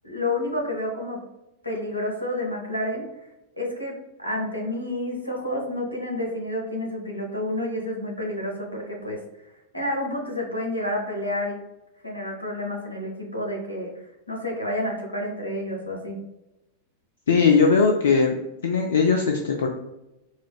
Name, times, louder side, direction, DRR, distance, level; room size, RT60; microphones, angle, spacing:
voice 1, 0.0-1.2 1.6-3.1 3.6-9.2 9.7-11.6 12.0-13.9 14.3-16.2, left 1 dB, 85° left, -1 dB, 0.8 m, -29 dB
voice 2, 17.3-18.4 18.6-19.7, left 5 dB, 65° left, 2 dB, 0.3 m, -19 dB
4.3 x 2.5 x 2.2 m, 0.95 s
figure-of-eight pair, 90°, 0 cm